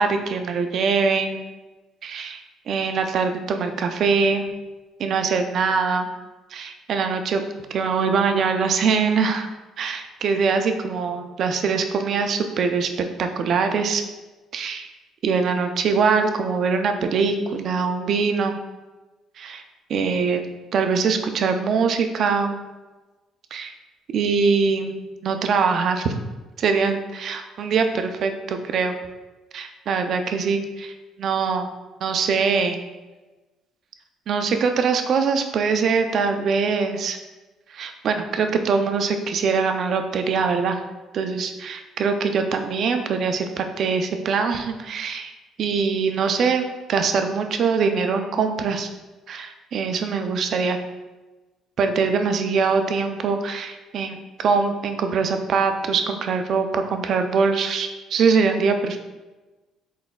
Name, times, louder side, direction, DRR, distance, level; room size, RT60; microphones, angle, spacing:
voice 1, 0.0-1.4 2.0-2.4 2.7-4.5 5.0-6.1 6.5-7.4 7.7-9.5 9.8-12.9 13.2-14.0 14.5-14.9 15.2-18.6 19.4-19.6 19.9-22.6 23.5-23.7 24.1-26.1 26.6-28.9 29.5-30.9 31.2-31.7 32.0-32.8 34.3-37.2 37.7-40.8 41.1-45.3 45.6-48.9 49.3-50.8 51.8-59.0, right 5 dB, 55° right, 6 dB, 0.4 m, -23 dB
4.0 x 3.9 x 2.3 m, 1.2 s
cardioid pair, 105°, 0 cm